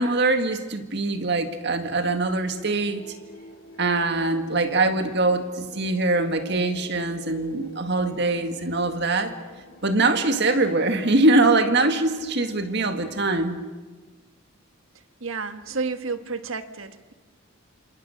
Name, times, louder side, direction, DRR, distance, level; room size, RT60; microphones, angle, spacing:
voice 1, 0.0-3.0 3.8-9.4 9.8-13.6, right 2 dB, 55° right, 7 dB, 1.9 m, -23 dB
sound 1, 2.4-13.4, left 2 dB, 75° left, 4.5 m, -46 dB
voice 2, 15.2-17.1, right 4 dB, 75° right, 9 dB, 1.5 m, -31 dB
28.0 x 27.0 x 6.5 m, 1.3 s
head